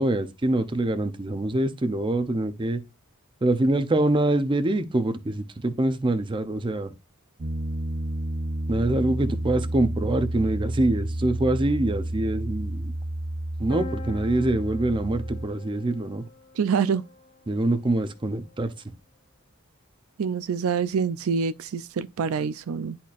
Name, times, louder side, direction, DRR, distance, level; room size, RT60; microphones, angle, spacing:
voice 1, 0.0-2.8 3.4-6.9 8.7-12.9 13.6-16.2 17.5-18.7, right 2 dB, 25° right, 0.6 m, -25 dB
Piano, 7.4-15.5, right 1 dB, 50° right, 0.9 m, -30 dB
sound 1, 13.7-17.4, left 3 dB, 50° left, 1.6 m, -43 dB
voice 2, 16.6-17.0 20.2-23.0, right 6 dB, 85° right, 0.4 m, -26 dB
10.0 x 4.3 x 2.4 m
head